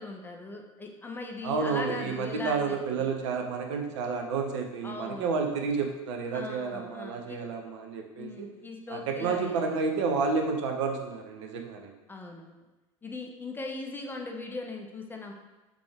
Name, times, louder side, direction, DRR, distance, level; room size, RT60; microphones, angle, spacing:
voice 1, 0.0-3.1 4.8-5.4 6.3-7.4 8.1-9.8 12.1-12.6 13.0-15.3, left 3 dB, 10° left, 2 dB, 0.4 m, -39 dB
voice 2, 1.4-8.5 8.9-11.9, right 5 dB, 60° right, 3 dB, 0.6 m, -30 dB
3.4 x 3.3 x 3.5 m, 1.1 s
figure-of-eight pair, 75°, 17 cm